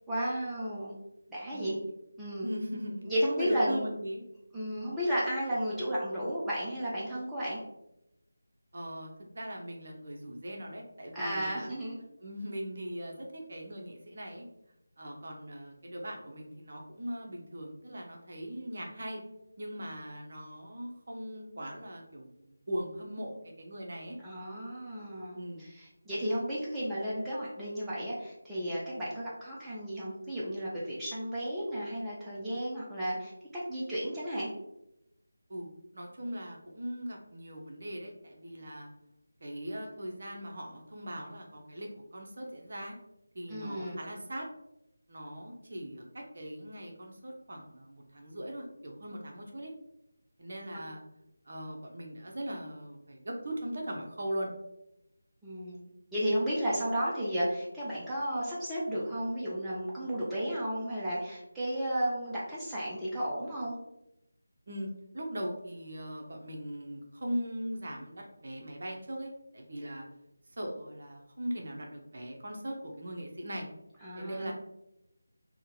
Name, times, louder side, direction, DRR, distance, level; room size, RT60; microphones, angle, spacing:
voice 1, 0.1-0.9 1.3-1.8 2.2-2.5 3.0-3.9 4.5-7.6 11.1-12.0 24.2-34.5 43.5-44.0 55.4-55.8 56.1-63.8 74.0-74.5, equal, 5° right, -9 dB, 0.4 m, -33 dB
voice 2, 2.4-3.0 3.4-4.2 8.7-11.7 12.2-14.5 15.0-19.2 19.6-24.2 25.3-25.6 35.5-38.9 39.4-43.0 43.3-44.5 45.1-49.7 50.4-51.0 51.5-54.5 64.7-70.0 70.6-73.7 74.2-74.5, equal, 45° right, 1 dB, 0.6 m, -40 dB
3.7 x 2.1 x 2.7 m, 0.86 s
figure-of-eight pair, 160°, 0 cm